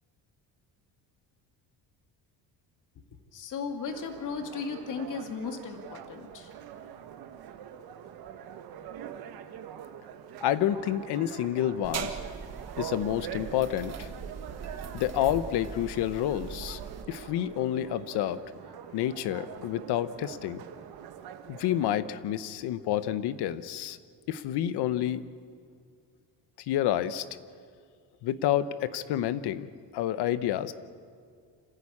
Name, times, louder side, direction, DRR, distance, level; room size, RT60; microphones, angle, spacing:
voice 1, 3.3-6.5, left 5 dB, 45° left, 5 dB, 2.2 m, -36 dB
sound 1, 3.8-22.0, right 9 dB, 60° right, 1.4 m, -44 dB
voice 2, 10.4-12.2 12.8-14.1 14.9-16.8 17.1-18.4 18.9-20.6 21.5-24.0 24.3-25.3 26.6-27.2 28.2-30.7, left 11 dB, 70° left, 13 dB, 1.0 m, -29 dB
sound 2, 11.8-17.0, right 6 dB, 40° right, 1.6 m, -40 dB
27.0 x 15.0 x 8.6 m, 2.2 s
cardioid pair, 175°, 41 cm